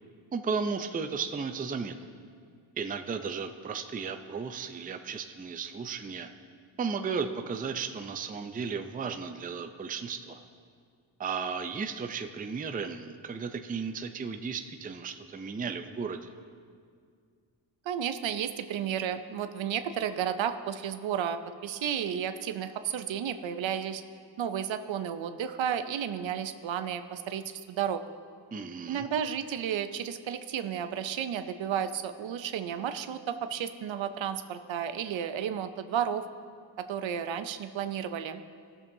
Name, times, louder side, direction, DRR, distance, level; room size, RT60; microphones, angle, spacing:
voice 1, 0.3-1.9 2.8-6.3 6.8-10.4 11.2-16.3 28.5-29.1, right 5 dB, 20° right, 7 dB, 0.4 m, -34 dB
voice 2, 17.9-24.0 24.4-28.0 28.9-36.3 36.8-38.4, right 9 dB, 70° right, 10 dB, 0.6 m, -32 dB
16.5 x 7.0 x 2.7 m, 2.1 s
cardioid pair, 80°, 48 cm